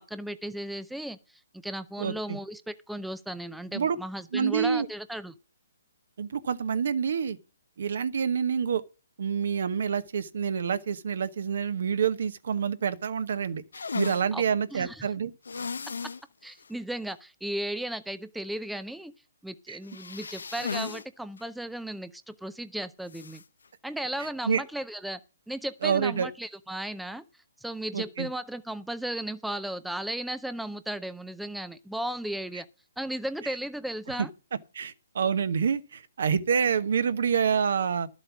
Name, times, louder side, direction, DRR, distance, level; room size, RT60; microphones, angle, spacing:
voice 1, 0.1-1.2 1.6-5.3 14.3-14.4 14.7-15.1 16.4-19.1 19.4-23.4 23.8-25.2 25.5-27.2 27.6-32.7 33.0-34.3, right 1 dB, ahead, 0.5 m, -35 dB
voice 2, 2.0-2.4 3.7-4.0 4.3-4.9 6.2-7.4 7.8-8.8 9.2-13.6 13.9-15.3 19.7-19.8 24.4-24.6 25.8-26.3 27.9-28.3 32.5-32.6 34.7-38.1, right 7 dB, 65° right, 1.0 m, -27 dB
sound 1, 13.7-14.3 15.4-16.2 16.6-16.7 17.1-17.2 19.8-21.0 21.4-21.5 23.1-23.4, left 5 dB, 85° left, 0.6 m, -35 dB
11.5 x 7.6 x 6.0 m
hypercardioid pair, 155°, 0 cm